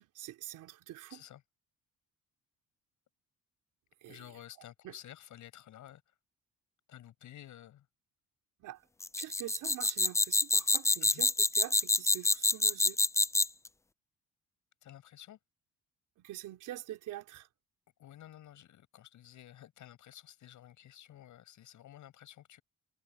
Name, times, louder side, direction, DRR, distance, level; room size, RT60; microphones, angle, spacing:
voice 1, 0.0-1.2 4.0-4.2 4.8-4.9 8.6-8.8 9.2-13.0 16.2-17.5, right 14 dB, 90° right, 3.9 m, -45 dB
voice 2, 1.1-1.4 4.0-6.1 6.9-7.9 11.0-11.2 14.8-15.4 18.0-22.6, left 12 dB, 75° left, 7.9 m, -52 dB
sound 1, 9.0-13.7, left 3 dB, 10° left, 0.4 m, -27 dB
cardioid pair, 90°, 30 cm